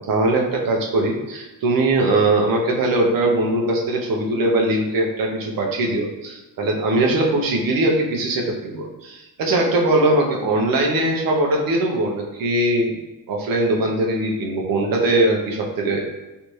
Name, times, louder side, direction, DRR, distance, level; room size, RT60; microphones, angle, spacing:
voice 1, 0.0-13.0 13.3-16.1, right 2 dB, 70° right, 0 dB, 0.8 m, -21 dB
3.3 x 2.7 x 3.1 m, 1.1 s
wide cardioid pair, 170°, 36 cm